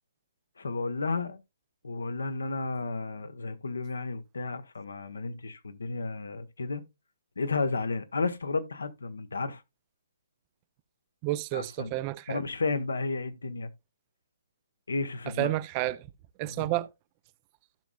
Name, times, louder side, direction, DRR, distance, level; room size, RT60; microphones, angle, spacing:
voice 1, 0.6-1.4 1.8-6.8 7.4-9.6 11.5-11.9 12.3-13.7 14.9-15.5 16.4-16.7, left 3 dB, 70° left, 1.2 m, -32 dB
voice 2, 11.2-12.4 15.4-16.1 16.4-16.9, right 17 dB, 30° right, 0.5 m, -30 dB
15.0 x 6.1 x 2.3 m
figure-of-eight pair, 130°, 0 cm